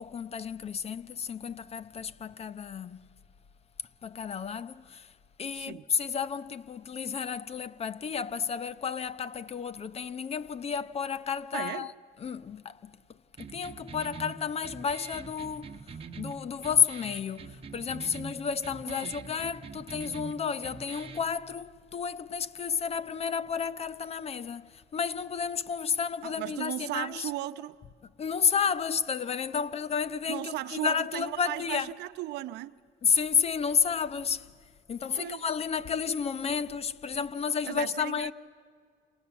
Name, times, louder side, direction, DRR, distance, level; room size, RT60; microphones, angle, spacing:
voice 1, 0.0-3.1 4.0-11.9 12.2-27.3 28.2-31.9 33.0-34.5 34.9-38.3, left 6 dB, 35° left, 0.8 m, -31 dB
voice 2, 11.5-11.9 18.9-19.1 26.2-27.8 30.3-32.7 35.1-35.4 37.7-38.3, right 15 dB, 80° right, 0.9 m, -36 dB
sound 1, 13.4-21.3, right 5 dB, 35° right, 1.1 m, -44 dB
29.0 x 27.5 x 7.2 m
cardioid pair, 110°, 17 cm